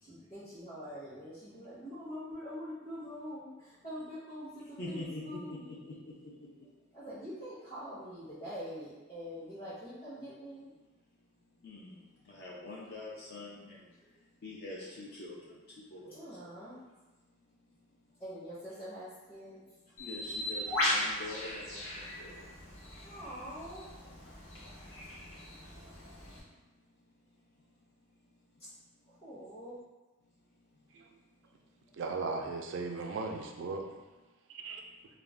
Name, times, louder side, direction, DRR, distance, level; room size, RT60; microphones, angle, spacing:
voice 1, 0.0-5.6 6.9-10.7 16.1-16.8 18.2-19.6 23.0-24.1 29.2-29.7, equal, 25° left, -13 dB, 0.9 m, -44 dB
voice 2, 4.8-6.1 11.6-12.0 12.2-13.9 14.4-16.2 20.0-22.5, left 2 dB, 50° left, -5 dB, 0.4 m, -44 dB
Bird, 20.0-26.4, left 1 dB, 75° left, 0.9 m, -37 dB
voice 3, 32.0-33.9 34.5-34.8, right 3 dB, 60° right, 3 dB, 0.3 m, -37 dB
2.4 x 2.1 x 3.3 m, 1.2 s
head